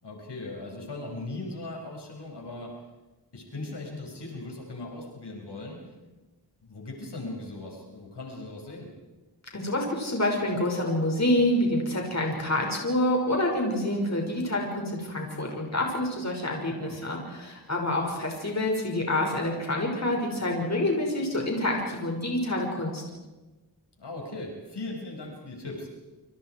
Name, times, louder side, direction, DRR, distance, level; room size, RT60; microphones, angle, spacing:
voice 1, 0.0-2.7 3.3-5.8 6.1-6.2 6.6-8.9 16.7-17.0 24.0-26.0, left 2 dB, 70° left, 0 dB, 6.3 m, -39 dB
voice 2, 9.5-23.0, left 1 dB, 40° left, 0 dB, 5.9 m, -27 dB
29.0 x 27.0 x 4.8 m, 1.1 s
wide cardioid pair, 75°, 42 cm